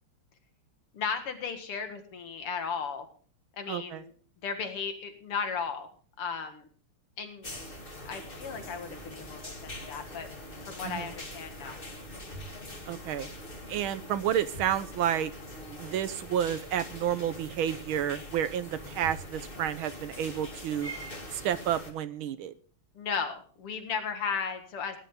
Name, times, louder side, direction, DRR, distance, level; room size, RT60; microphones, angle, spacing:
voice 1, 0.9-3.1 3.6-4.1 4.4-5.9 6.2-6.7 7.2-7.5 8.0-10.3 10.6-11.8 22.9-25.0, left 6 dB, 85° left, 6 dB, 2.8 m, -35 dB
voice 2, 3.7-4.0 10.8-11.1 12.9-13.3 13.7-15.3 15.8-20.9 21.3-22.5, right 10 dB, 75° right, 13 dB, 1.6 m, -30 dB
sound 1, 7.4-21.9, left 1 dB, 25° left, 2.3 m, -43 dB
18.0 x 11.5 x 3.8 m, 0.41 s
omnidirectional pair, 2.4 m